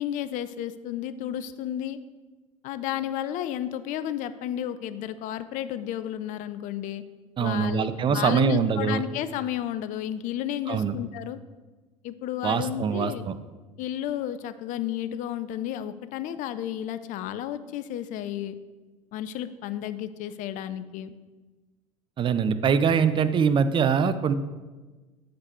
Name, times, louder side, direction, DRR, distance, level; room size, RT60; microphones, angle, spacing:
voice 1, 0.0-2.0 2.6-7.0 7.4-11.4 12.0-13.2 13.8-18.5 19.1-21.1, left 11 dB, 50° left, 13 dB, 0.5 m, -32 dB
voice 2, 7.4-9.0 10.7-10.9 12.4-13.3 22.2-24.3, right 6 dB, 30° right, 12 dB, 0.5 m, -23 dB
8.1 x 5.1 x 4.4 m, 1.3 s
figure-of-eight pair, 70°, 17 cm